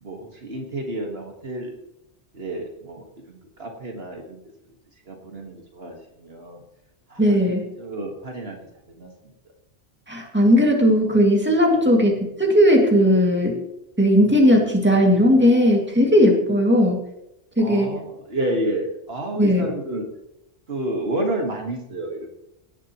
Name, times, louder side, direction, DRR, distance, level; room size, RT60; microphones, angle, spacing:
voice 1, 0.0-1.7 2.3-4.4 5.1-6.6 7.1-8.6 9.0-9.1 11.7-11.8 17.6-20.0 20.7-22.3, right 1 dB, 65° right, 2 dB, 1.9 m, -30 dB
voice 2, 7.2-7.7 10.1-12.1 12.4-13.6 14.0-17.0 17.6-17.9 19.4-19.7, equal, 10° right, 0 dB, 2.2 m, -17 dB
17.5 x 10.5 x 3.0 m, 0.84 s
omnidirectional pair, 1.1 m